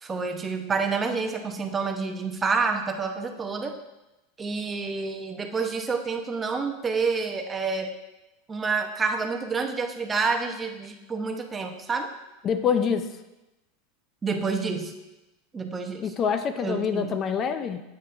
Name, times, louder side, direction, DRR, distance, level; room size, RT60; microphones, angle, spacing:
voice 1, 0.0-3.8 4.4-7.9 8.5-12.1 14.2-14.9 15.5-16.1 16.6-17.2, right 4 dB, 20° right, 4 dB, 0.9 m, -28 dB
voice 2, 12.4-13.1 16.0-17.8, left 7 dB, 30° left, 10 dB, 0.5 m, -26 dB
9.7 x 8.4 x 2.6 m, 0.99 s
supercardioid pair, 130°, 0 cm